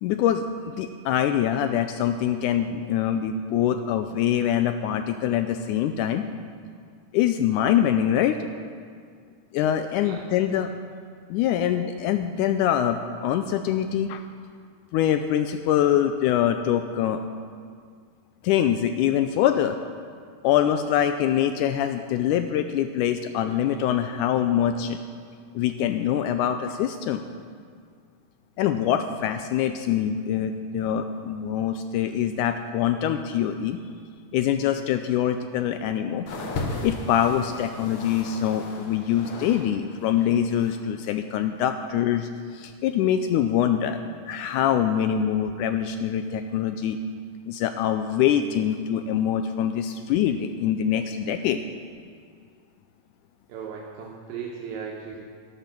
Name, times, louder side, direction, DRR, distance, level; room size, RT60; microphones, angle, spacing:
voice 1, 0.0-6.2 7.1-8.4 9.5-10.7 11.3-14.2 14.9-17.2 18.4-19.8 20.4-25.0 25.6-27.2 28.6-33.8 34.3-36.3 36.8-44.0 44.3-47.0 47.5-51.6, left 10 dB, 90° left, 8 dB, 1.8 m, -24 dB
voice 2, 10.0-10.6 46.7-46.8 53.5-55.2, right 6 dB, 80° right, -1 dB, 2.8 m, -37 dB
sound 1, 36.3-39.7 39.9-40.8 41.6-41.7, left 2 dB, 55° left, 1.7 m, -36 dB
13.0 x 10.5 x 5.9 m, 2.1 s
omnidirectional pair, 4.1 m